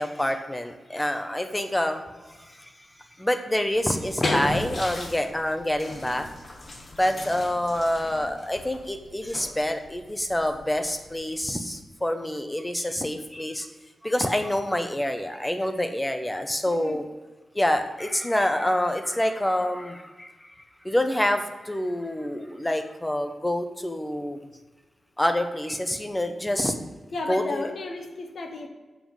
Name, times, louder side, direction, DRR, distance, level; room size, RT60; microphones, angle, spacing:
voice 1, 0.0-2.0 3.2-6.3 7.0-13.7 14.0-17.0 17.5-20.3 20.8-24.4 25.2-26.7 27.3-27.7, left 1 dB, 10° left, 6 dB, 0.8 m, -27 dB
sound 1, 3.8-11.8, left 2 dB, 40° left, 1.2 m, -36 dB
voice 2, 16.7-17.0 27.1-28.7, left 3 dB, 60° left, 3 dB, 1.4 m, -33 dB
7.3 x 5.8 x 7.1 m, 1.2 s
wide cardioid pair, 170°, 0 cm